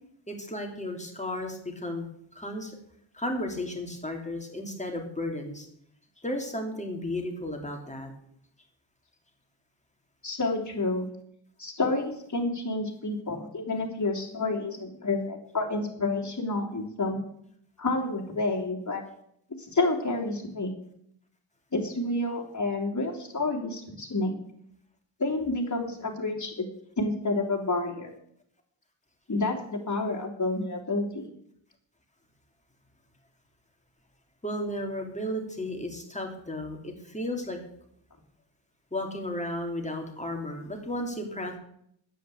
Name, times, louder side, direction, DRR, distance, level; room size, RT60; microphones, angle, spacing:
voice 1, 0.3-2.1 2.3-2.8 3.1-5.7 6.2-8.1 34.4-37.6 38.9-41.6, left 1 dB, 15° left, 2 dB, 3.0 m, -34 dB
voice 2, 10.2-11.1 11.6-17.2 17.8-19.0 19.6-20.7 21.7-24.3 25.2-26.6 27.0-28.1 29.3-31.3, left 2 dB, 35° left, -1 dB, 3.1 m, -29 dB
10.0 x 8.9 x 8.3 m, 0.70 s
wide cardioid pair, 90°, 48 cm